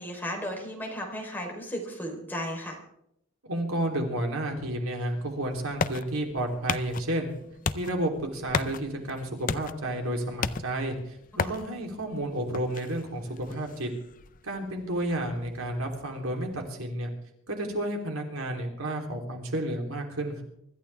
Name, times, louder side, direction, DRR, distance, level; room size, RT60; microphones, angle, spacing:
voice 1, 0.0-2.8, equal, 10° left, 0 dB, 3.9 m, -35 dB
voice 2, 3.5-7.3 7.7-13.9 14.4-17.1 17.5-20.4, right 1 dB, 90° right, 2 dB, 3.4 m, -31 dB
sound 1, 5.1-16.5, left 5 dB, 40° left, 0.5 m, -36 dB
24.5 x 14.0 x 3.5 m, 0.76 s
head